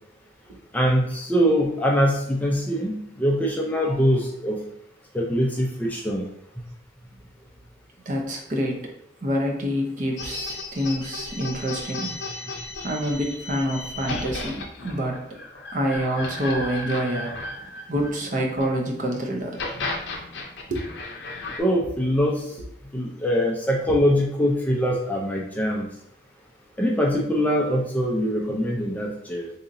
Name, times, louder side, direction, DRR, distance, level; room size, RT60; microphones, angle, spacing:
voice 1, 0.7-4.6 5.1-6.2 21.6-22.4 22.9-25.9 26.8-29.5, equal, 10° left, -1 dB, 0.4 m, -23 dB
voice 2, 8.1-8.9 9.2-12.2 12.8-15.2 15.7-17.5 17.9-20.3 20.7-21.4, equal, 45° right, 1 dB, 0.6 m, -27 dB
sound 1, 10.2-18.6 19.4-21.6, left 2 dB, 70° left, 0.6 m, -34 dB
3.9 x 2.8 x 2.5 m, 0.74 s
head